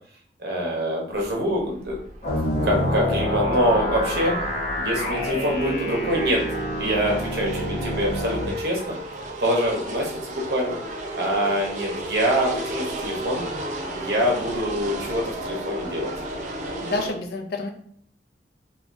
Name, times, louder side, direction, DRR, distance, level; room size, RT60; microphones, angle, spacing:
voice 1, 0.4-2.0 2.6-4.3 4.8-6.4 6.8-8.9 9.4-10.8 11.1-13.4 13.9-16.1, equal, 60° right, -1 dB, 0.9 m, -25 dB
sound 1, 1.1-17.1, right 1 dB, 40° right, 0.5 m, -34 dB
sound 2, 2.2-8.5, equal, 40° left, 0.9 m, -27 dB
voice 2, 16.8-17.7, left 2 dB, 55° left, 4 dB, 0.4 m, -29 dB
3.4 x 2.4 x 2.5 m, 0.63 s
head